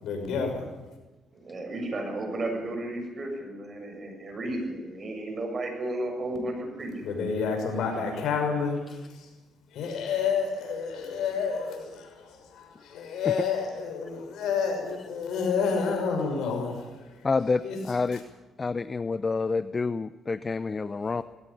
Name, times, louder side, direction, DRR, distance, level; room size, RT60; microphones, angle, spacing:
voice 1, 0.0-0.7 7.0-9.3 9.7-17.2 17.6-17.8, left 5 dB, 80° left, 4 dB, 6.0 m, -29 dB
voice 2, 1.3-7.1, right 1 dB, 40° right, 4 dB, 7.5 m, -33 dB
voice 3, 17.2-18.2 18.6-21.2, left 4 dB, 30° left, 14 dB, 0.7 m, -28 dB
19.5 x 17.0 x 10.0 m, 1.1 s
cardioid pair, 90°, 0 cm